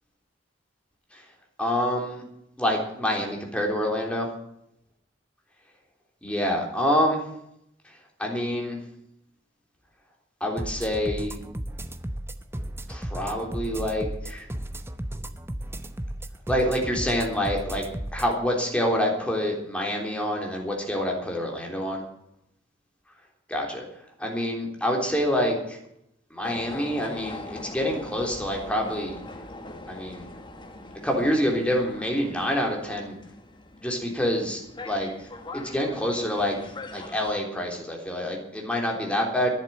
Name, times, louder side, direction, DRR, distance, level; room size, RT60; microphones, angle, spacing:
voice 1, 1.6-2.2 2.6-4.3 6.2-7.2 8.2-8.8 10.4-11.4 12.9-14.5 16.5-17.8 18.1-22.0 23.5-23.9 24.2-25.8 26.3-29.2 29.9-30.3 31.0-33.1 33.8-35.1 35.5-36.6 36.9-39.5, equal, 5° left, 0 dB, 3.6 m, -27 dB
sound 1, 10.6-18.3, right 1 dB, 15° right, 0.8 m, -34 dB
sound 2, 26.4-37.3, left 2 dB, 25° left, 1.4 m, -42 dB
11.0 x 10.5 x 9.4 m, 0.77 s
head